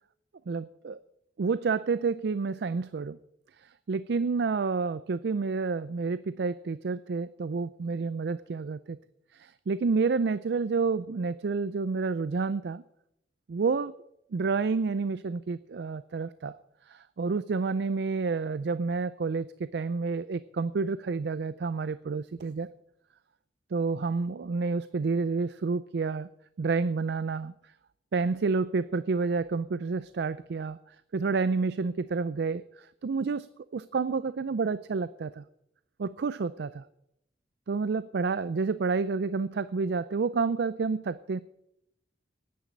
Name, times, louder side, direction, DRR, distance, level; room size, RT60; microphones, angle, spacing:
voice 1, 0.5-1.0 1.4-3.2 3.6-9.0 9.3-12.8 13.5-13.9 14.3-16.5 16.9-22.7 23.7-26.3 26.6-27.5 28.1-33.5 33.7-35.4 36.0-36.8 37.7-41.4, right 4 dB, 65° right, 16 dB, 0.4 m, -29 dB
10.5 x 9.4 x 8.6 m, 0.79 s
head